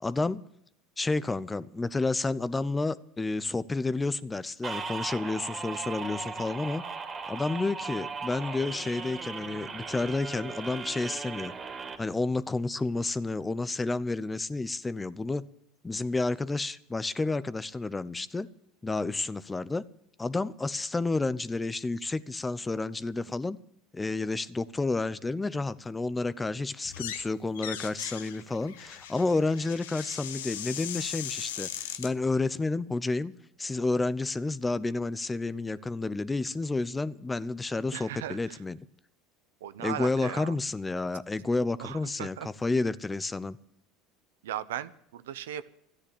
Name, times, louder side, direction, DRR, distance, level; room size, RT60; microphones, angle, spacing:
voice 1, 0.0-0.4 1.0-6.8 7.3-11.5 12.0-15.4 15.8-18.5 18.8-19.8 20.2-23.6 23.9-33.3 33.6-38.8 39.8-43.6, left 3 dB, 15° left, 17 dB, 0.8 m, -30 dB
sound 1, 4.6-12.0, right 5 dB, 35° right, 2.6 m, -38 dB
sound 2, 26.8-27.3 27.5-32.1, left 10 dB, 85° left, 0.9 m, -38 dB
voice 2, 37.9-38.6 39.6-40.6 41.8-42.5 44.4-45.7, right 11 dB, 85° right, 14 dB, 0.8 m, -37 dB
13.5 x 9.8 x 8.5 m, 0.73 s
hypercardioid pair, 95°, 0 cm